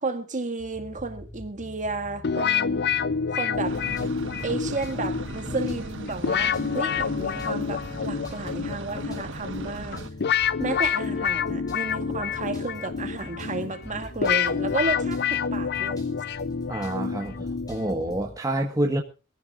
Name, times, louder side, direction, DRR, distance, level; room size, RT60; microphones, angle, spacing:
voice 1, 0.0-2.9 3.3-3.8 4.4-10.0 10.6-16.0, right 3 dB, 35° right, 2.1 m, -32 dB
sound 1, 0.6-18.3, left 1 dB, 20° left, 6.6 m, -44 dB
sound 2, 2.2-18.2, left 7 dB, 50° left, 0.6 m, -28 dB
sound 3, 3.6-10.1, right 3 dB, 60° right, 1.5 m, -39 dB
voice 2, 16.7-19.0, right 1 dB, 15° right, 1.6 m, -27 dB
24.0 x 15.0 x 2.6 m
head